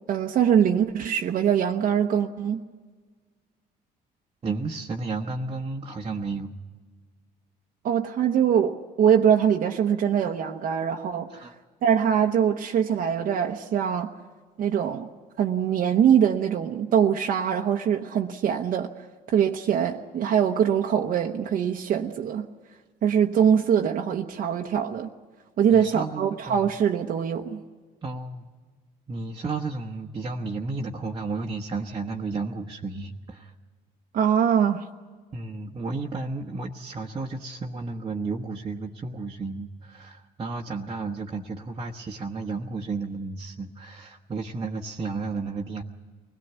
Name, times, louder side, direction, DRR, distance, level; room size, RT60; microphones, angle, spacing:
voice 1, 0.1-2.6 7.8-11.5 11.8-14.1 14.6-15.1 15.4-18.9 19.3-22.5 23.0-25.1 25.6-27.6 34.1-34.9, right 8 dB, 55° right, 2 dB, 0.9 m, -23 dB
voice 2, 4.4-6.5 11.3-11.5 25.7-26.7 28.0-28.5 29.1-33.5 35.3-45.8, right 3 dB, 30° right, 0 dB, 1.1 m, -32 dB
24.0 x 18.0 x 8.2 m, 1.5 s
cardioid pair, 110°, 17 cm